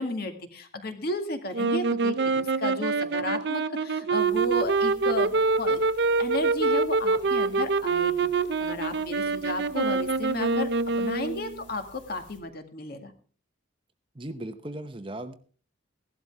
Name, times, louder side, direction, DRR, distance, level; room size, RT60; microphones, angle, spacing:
voice 1, 0.0-5.8 6.2-8.3 8.6-10.7 11.0-13.1, left 1 dB, 50° left, 6 dB, 2.1 m, -33 dB
sound 1, 1.5-11.6, right 4 dB, 55° right, 0.6 m, -25 dB
sound 2, 4.2-12.4, left 2 dB, 65° left, 2.9 m, -54 dB
voice 2, 14.2-15.3, right 1 dB, 25° right, 10 dB, 0.8 m, -37 dB
16.0 x 12.0 x 3.5 m, 0.41 s
head